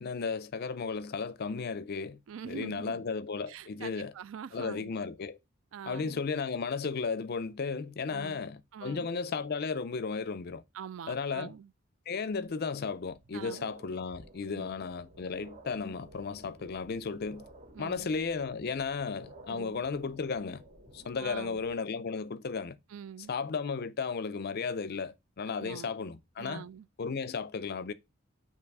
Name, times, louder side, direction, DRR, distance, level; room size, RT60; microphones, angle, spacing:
voice 1, 0.0-2.2 2.4-4.1 4.5-5.4 5.9-10.6 11.1-11.5 12.1-17.5 17.8-20.6 20.9-22.8 23.3-26.6 27.0-27.9, left 5 dB, 50° left, 0.5 m, -34 dB
voice 2, 2.3-3.1 3.5-4.9 5.7-6.2 8.1-8.4 8.7-9.1 10.7-11.7 13.3-13.7 14.5-14.7 17.7-18.1 19.5-19.8 21.2-21.6 22.9-23.3 25.5-25.9 26.4-26.9, right 7 dB, 70° right, 0.3 m, -44 dB
sound 1, 12.3-12.4 12.9-21.7, right 1 dB, 35° right, 1.0 m, -53 dB
7.1 x 2.9 x 4.7 m
head